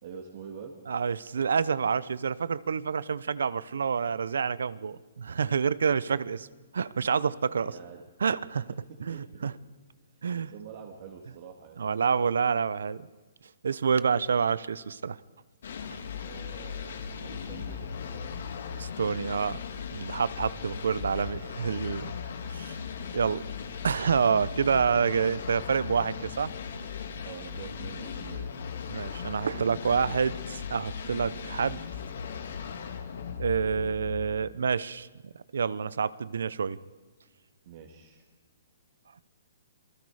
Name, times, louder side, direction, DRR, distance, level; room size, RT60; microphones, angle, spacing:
voice 1, 0.0-0.8 7.6-8.0 8.9-9.5 10.5-11.8 16.2-18.3 27.2-28.6 29.5-29.7 37.6-38.2, right 7 dB, 45° right, 1 dB, 2.2 m, -46 dB
voice 2, 0.9-6.5 6.7-7.8 8.2-8.7 9.0-9.5 10.2-10.5 11.8-13.1 13.6-15.2 18.8-19.6 19.9-22.1 22.4-22.8 23.1-23.4 23.8-26.5 28.9-31.8 33.4-35.1 35.5-36.8, right 6 dB, 80° right, 19 dB, 0.8 m, -28 dB
sound 1, 15.6-34.6, left 6 dB, 65° left, 2.5 m, -38 dB
27.5 x 19.5 x 5.0 m, 1.3 s
hypercardioid pair, 155°, 0 cm